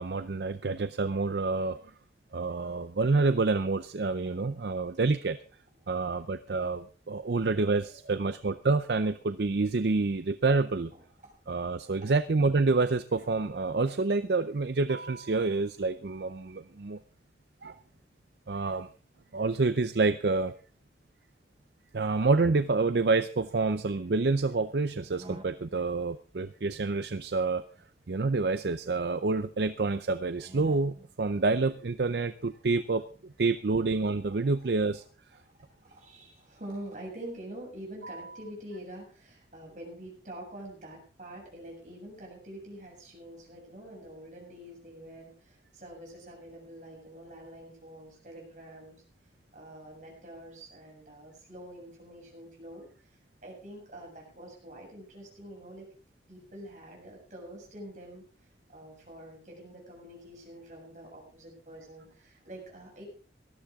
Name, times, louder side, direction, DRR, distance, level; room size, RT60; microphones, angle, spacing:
voice 1, 0.0-1.8 2.3-5.4 5.9-10.9 11.5-17.0 17.6-17.8 18.5-18.9 19.3-20.5 21.9-27.6 28.1-33.0 33.4-35.0 38.0-38.2, right 3 dB, 65° right, 12 dB, 0.6 m, -28 dB
voice 2, 7.9-8.4 10.9-11.3 11.8-12.1 34.6-34.7 35.4-48.9 49.5-56.0 56.3-58.3 58.7-63.1, right 1 dB, 45° right, -1 dB, 7.5 m, -46 dB
sound 1, 24.9-26.0 27.3-28.9 30.3-31.3, right 1 dB, 30° right, 0.9 m, -51 dB
18.0 x 13.5 x 3.6 m, 0.37 s
head